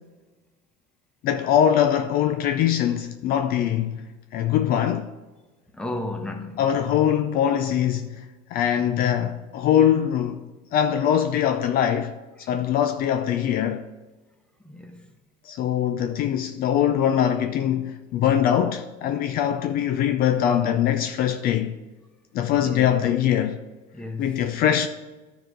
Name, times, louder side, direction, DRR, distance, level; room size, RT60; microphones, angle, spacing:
voice 1, 1.2-4.0 4.3-5.1 6.6-8.3 8.5-10.4 10.7-13.9 15.4-21.8 22.3-23.6 24.2-24.9, left 10 dB, 45° left, 0.5 m, -22 dB
voice 2, 5.7-6.6 8.7-8.8 14.6-15.0 22.6-22.9 23.9-24.5, left 2 dB, 5° left, 1.0 m, -33 dB
11.0 x 4.8 x 3.9 m
supercardioid pair, 120°, 21 cm